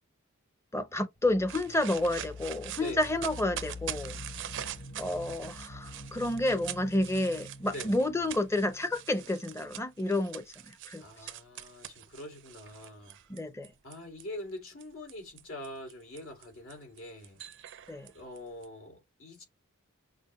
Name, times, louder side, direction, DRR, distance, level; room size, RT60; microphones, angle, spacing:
voice 1, 0.7-4.2 5.0-11.3 13.3-13.7 17.9-18.1, left 1 dB, 15° left, 0.6 m, -30 dB
sound 1, 1.2-9.8, left 2 dB, 35° left, 1.3 m, -47 dB
sound 2, 1.5-14.2 14.8-18.7, right 11 dB, 60° right, 0.5 m, -44 dB
voice 2, 2.8-3.1 7.7-8.0 11.0-13.2 13.8-17.4 18.1-19.4, left 1 dB, 70° left, 2.1 m, -44 dB
6.2 x 2.2 x 3.0 m
head